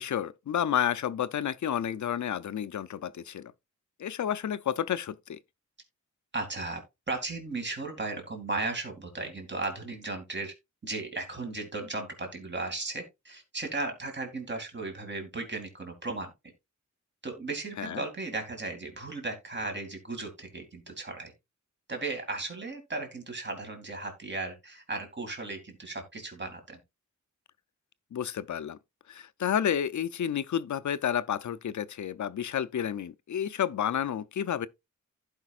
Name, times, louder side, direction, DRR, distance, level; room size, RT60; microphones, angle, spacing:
voice 1, 0.0-3.5 4.0-5.4 17.8-18.0 28.1-28.8 29.1-34.7, left 9 dB, 65° left, 0.5 m, -30 dB
voice 2, 6.3-6.8 7.1-10.5 10.8-16.3 17.2-21.3 21.9-26.8, right 3 dB, 35° right, 2.3 m, -36 dB
15.0 x 5.1 x 2.4 m
wide cardioid pair, 120°, 31 cm